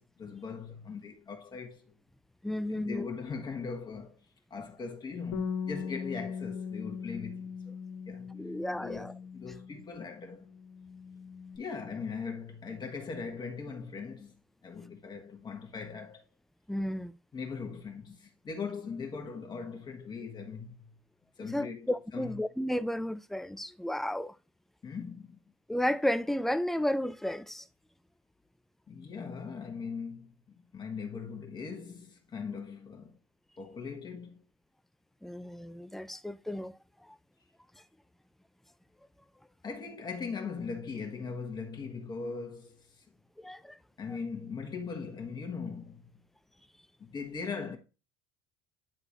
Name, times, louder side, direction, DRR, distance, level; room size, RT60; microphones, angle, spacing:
voice 1, 0.0-1.9 2.7-4.2 4.5-7.8 8.1-8.3 8.7-10.5 11.6-16.3 17.3-20.9 21.4-22.4 24.8-25.4 28.9-33.2 33.6-34.4 39.6-43.0 44.0-46.0 47.0-47.8, left 5 dB, 30° left, 1.5 m, -40 dB
voice 2, 2.4-3.1 8.3-9.1 16.7-17.2 21.4-24.4 25.7-27.7 35.2-36.8 43.4-43.8, left 1 dB, ahead, 0.5 m, -33 dB
Bass guitar, 5.3-10.0 10.3-11.6, left 6 dB, 70° left, 1.5 m, -40 dB
10.0 x 3.8 x 2.9 m
hypercardioid pair, 75°, 14 cm